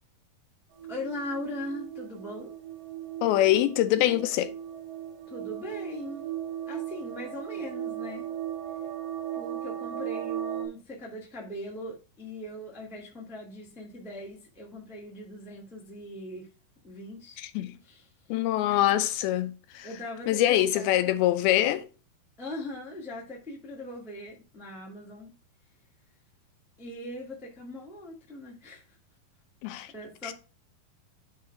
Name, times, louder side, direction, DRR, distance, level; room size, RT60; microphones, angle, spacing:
sound 1, 0.7-10.7, right 11 dB, 80° right, 3.2 m, -37 dB
voice 1, 0.9-2.5 5.3-6.2 6.7-8.3 9.3-16.5 16.8-17.4 17.8-18.0 18.7-18.8 19.8-21.1 22.4-25.3 26.8-28.8 29.9-30.3, left 1 dB, ahead, 0.5 m, -40 dB
voice 2, 3.2-4.5 17.4-17.7 18.3-19.9 20.3-21.9 29.6-29.9 30.2-30.3, left 13 dB, 85° left, 2.5 m, -24 dB
9.9 x 3.5 x 4.7 m
omnidirectional pair, 4.4 m